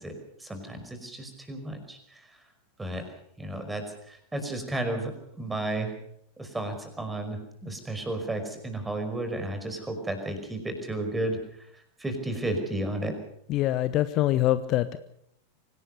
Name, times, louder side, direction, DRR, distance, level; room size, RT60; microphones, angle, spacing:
voice 1, 0.0-2.4 2.8-3.1 3.4-6.0 6.4-13.2, right 1 dB, 10° right, 6 dB, 5.3 m, -33 dB
voice 2, 13.5-15.0, left 14 dB, 35° left, 13 dB, 0.9 m, -24 dB
25.0 x 18.0 x 6.7 m, 0.71 s
figure-of-eight pair, 90°, 0 cm